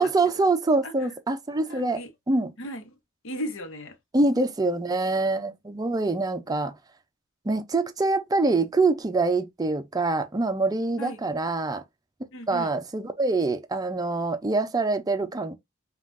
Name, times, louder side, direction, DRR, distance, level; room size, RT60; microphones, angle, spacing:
voice 1, 0.0-2.0 2.3-2.5 4.1-6.8 7.4-11.8 12.5-15.5, right 3 dB, 20° right, 0.5 m, -25 dB
voice 2, 1.5-2.1 2.6-3.0 3.2-4.0 11.0-11.2 12.3-12.7, equal, 65° left, 0.9 m, -36 dB
5.4 x 2.4 x 2.5 m
head